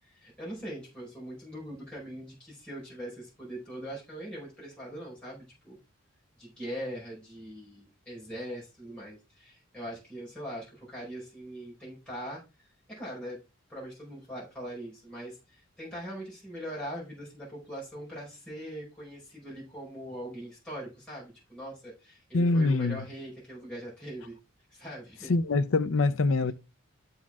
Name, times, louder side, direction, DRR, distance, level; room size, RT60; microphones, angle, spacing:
voice 1, 0.0-5.8 6.4-13.4 13.7-24.4 24.7-25.3 26.4-26.5, equal, 5° left, 4.7 m, -41 dB
voice 2, 22.3-23.0 25.3-26.5, left 3 dB, 75° left, 0.6 m, -24 dB
12.5 x 4.3 x 3.6 m
head